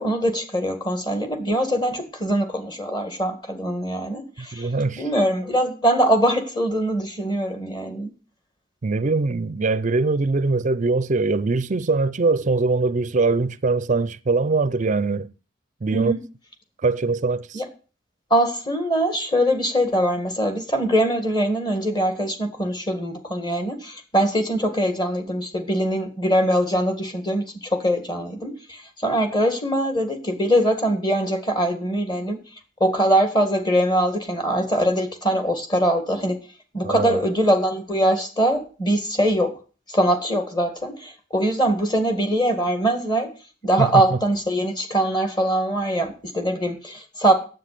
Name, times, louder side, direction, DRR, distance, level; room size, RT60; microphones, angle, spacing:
voice 1, 0.0-8.1 15.9-16.2 17.5-17.7 18.3-32.4 32.8-36.4 36.7-39.5 39.9-43.3 43.6-47.3, right 1 dB, 20° left, 1.8 m, -22 dB
voice 2, 4.5-5.0 8.8-15.3 15.8-16.1 16.8-17.6 36.8-37.2 43.8-44.2, right 3 dB, 40° right, 0.5 m, -22 dB
9.5 x 7.9 x 6.7 m
head